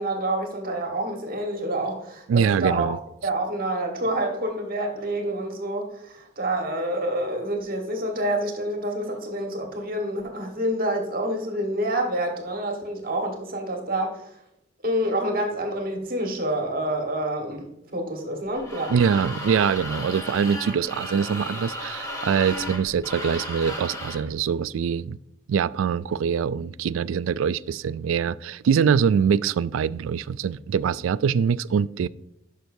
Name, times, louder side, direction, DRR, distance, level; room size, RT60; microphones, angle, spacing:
voice 1, 0.0-2.9 3.2-14.2 14.8-19.0, right 1 dB, 50° right, 1.6 m, -27 dB
voice 2, 2.3-3.0 18.9-25.2 25.5-32.1, right 7 dB, 90° right, 0.3 m, -23 dB
sound 1, 18.5-24.3, left 1 dB, 20° left, 1.9 m, -34 dB
11.5 x 6.1 x 2.7 m
head